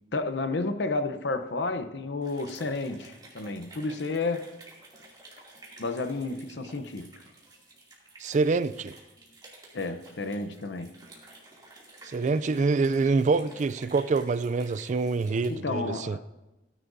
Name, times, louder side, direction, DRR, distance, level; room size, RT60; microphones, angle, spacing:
voice 1, 0.1-4.5 5.8-7.1 9.7-10.9 15.5-16.2, left 3 dB, 65° left, 0.8 m, -31 dB
sound 1, 2.2-15.5, right 2 dB, 25° right, 2.6 m, -52 dB
voice 2, 8.2-9.0 12.1-16.2, right 4 dB, 40° right, 0.3 m, -26 dB
17.0 x 10.0 x 2.7 m
head